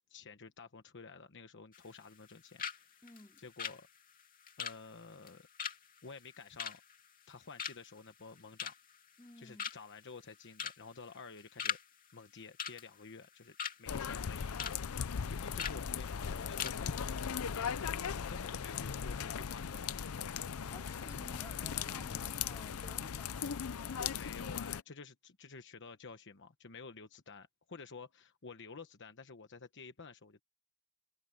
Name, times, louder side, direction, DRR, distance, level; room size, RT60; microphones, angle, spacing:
voice 1, 0.1-3.0 3.4-3.9 4.6-5.5 6.0-6.8 7.3-8.7 9.4-11.8 12.1-20.1 24.0-30.4, left 4 dB, 55° left, 1.1 m, -51 dB
sound 1, 1.7-2.3 2.6-2.8 3.1-7.3 7.6-8.0 8.4-9.0 9.3-9.4 9.6-10.0 10.5-10.8 11.1-11.8 12.1-12.2 12.6-13.8 14.2-14.8 15.0-15.2 15.6-15.8 16.2-16.3 16.6-16.8 17.0-17.2, left 7 dB, 40° left, 2.4 m, -40 dB
voice 2, 3.0-3.4 9.2-9.7 20.7-24.1, left 1 dB, 15° left, 3.5 m, -55 dB
sound 2, 13.9-24.8, left 7 dB, 80° left, 0.6 m, -38 dB
head